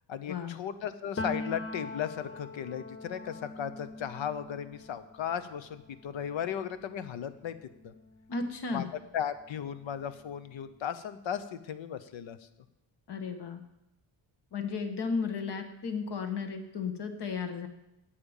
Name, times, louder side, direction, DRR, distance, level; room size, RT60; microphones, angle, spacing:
voice 1, 0.1-7.6 7.8-7.9 8.7-8.9 9.1-12.4, left 9 dB, 70° left, 12 dB, 1.0 m, -36 dB
Piano, 1.2-8.8 9.1-10.7, left 2 dB, 30° left, 0.7 m, -43 dB
voice 2, 8.3-8.9 13.1-13.6 14.5-17.7, left 5 dB, 55° left, 6 dB, 1.5 m, -34 dB
8.8 x 8.7 x 7.2 m, 0.86 s
cardioid pair, 105°, 47 cm